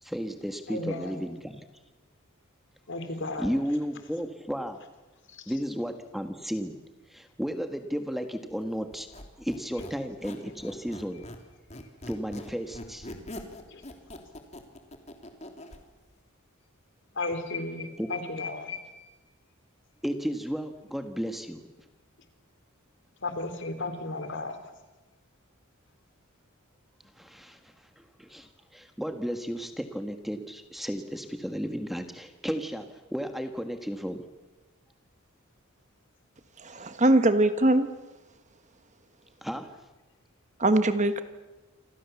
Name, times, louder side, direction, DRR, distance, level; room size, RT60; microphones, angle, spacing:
voice 1, 0.0-1.6 3.4-4.8 5.5-6.7 7.1-9.1 9.4-11.2 12.1-13.1 18.0-18.1 20.0-21.6 27.2-34.2 39.4-39.7, equal, ahead, 6 dB, 1.5 m, -33 dB
voice 2, 0.7-1.2 2.9-3.5 5.3-5.5 13.7-13.8 17.2-19.1 23.2-24.6, left 2 dB, 60° left, 8 dB, 3.7 m, -34 dB
Squeak, 8.9-11.4 11.7-15.8, left 1 dB, 30° left, 3.2 m, -43 dB
voice 3, 36.6-37.9 40.6-41.2, right 1 dB, 35° right, 10 dB, 1.5 m, -22 dB
28.5 x 25.5 x 7.1 m, 1.2 s
head